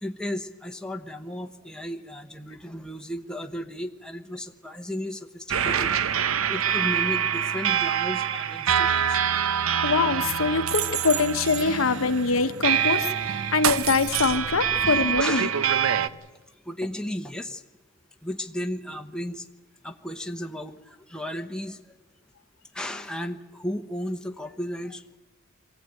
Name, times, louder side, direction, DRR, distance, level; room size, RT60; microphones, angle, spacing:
voice 1, 0.0-5.9 6.5-9.2 15.2-15.6 16.6-17.6 18.2-19.5 19.8-21.9 22.7-25.2, left 1 dB, 5° left, 4 dB, 1.0 m, -34 dB
sound 1, 5.5-16.1, right 8 dB, 85° right, 0.7 m, -25 dB
voice 2, 9.8-13.1 13.5-15.5, left 4 dB, 75° left, 10 dB, 0.9 m, -24 dB
Acoustic guitar, 10.1-14.2 14.8-16.4, right 3 dB, 65° right, 1.1 m, -42 dB
23.5 x 16.0 x 9.0 m, 1.1 s
head